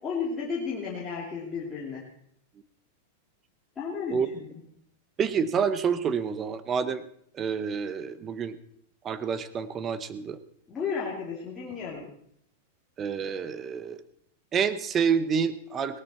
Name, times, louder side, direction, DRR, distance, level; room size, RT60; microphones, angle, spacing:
voice 1, 0.0-2.0 3.8-4.5 10.7-12.1, left 5 dB, 15° left, -7 dB, 2.8 m, -33 dB
voice 2, 5.2-7.0 7.3-8.6 9.0-10.4 13.0-14.0 14.5-16.0, right 6 dB, 20° right, 14 dB, 0.8 m, -28 dB
18.0 x 13.0 x 4.3 m, 0.67 s
supercardioid pair, 160°, 0 cm